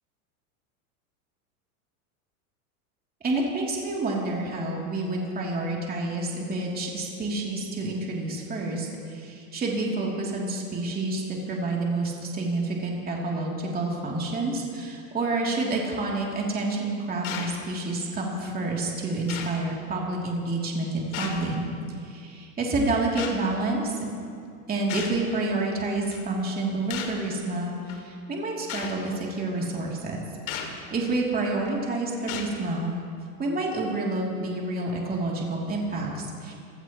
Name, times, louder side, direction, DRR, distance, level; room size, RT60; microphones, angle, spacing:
voice 1, 3.2-21.7 22.0-24.1 24.7-33.0 33.4-36.5, right 2 dB, 20° right, -3 dB, 3.0 m, -29 dB
sound 1, 17.2-17.6 18.5-18.6 19.3-19.6 21.1-21.6 23.2-23.4 24.9-25.2 26.1-26.3 26.9-27.2 27.9-28.0 28.7-29.0 30.5-30.8 31.5-31.7 32.3-32.6, left 8 dB, 65° left, 2.7 m, -35 dB
28.0 x 17.0 x 3.1 m, 2.4 s
supercardioid pair, 125°, 45 cm